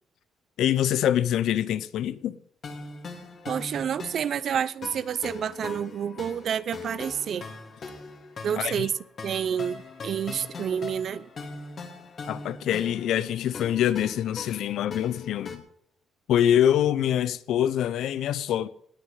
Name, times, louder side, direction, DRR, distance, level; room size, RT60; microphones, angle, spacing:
voice 1, 0.6-2.4 8.6-8.9 12.3-15.6 16.3-18.7, left 10 dB, 80° left, 0.8 m, -25 dB
sound 1, 2.6-15.6, left 4 dB, 50° left, 3.0 m, -41 dB
voice 2, 3.5-7.4 8.4-8.9 9.2-11.2, right 8 dB, 60° right, 0.7 m, -29 dB
19.0 x 6.4 x 9.2 m
cardioid pair, 90°, 0 cm